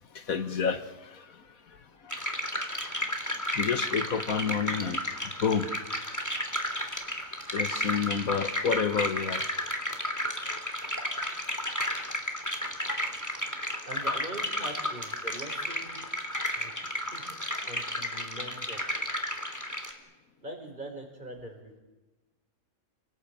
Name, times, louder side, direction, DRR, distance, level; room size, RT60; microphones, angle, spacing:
voice 1, 0.1-2.2 3.0-3.1 3.5-5.7 7.5-9.5 12.5-12.9 17.6-17.7, left 6 dB, 75° left, 10 dB, 1.8 m, -30 dB
sound 1, 2.1-19.9, equal, 10° left, 3.1 m, -33 dB
voice 2, 13.8-16.0 16.6-16.7 17.1-17.2 17.7-18.8 20.4-21.8, right 1 dB, 30° right, 4 dB, 5.5 m, -42 dB
29.5 x 18.5 x 8.9 m, 1.1 s
omnidirectional pair, 1.5 m